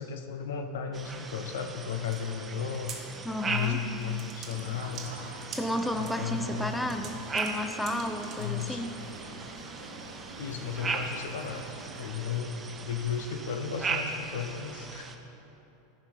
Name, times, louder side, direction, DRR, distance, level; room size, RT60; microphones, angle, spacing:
voice 1, 0.0-2.9 3.4-5.1 5.9-6.7 8.4-8.8 10.4-15.1, left 7 dB, 70° left, 6 dB, 0.7 m, -34 dB
sound 1, 0.9-15.2, right 4 dB, 25° right, 0.9 m, -39 dB
sound 2, 2.0-2.2 2.6-3.0 3.6-3.7 4.0-6.1 6.7-8.7, right 7 dB, 45° right, 1.4 m, -44 dB
voice 2, 3.2-3.8 5.5-8.9, left 1 dB, 5° left, 7 dB, 0.6 m, -32 dB
sound 3, 4.5-12.1, right 2 dB, 90° right, 1.1 m, -45 dB
14.5 x 5.3 x 4.5 m, 3.0 s
figure-of-eight pair, 85°, 0 cm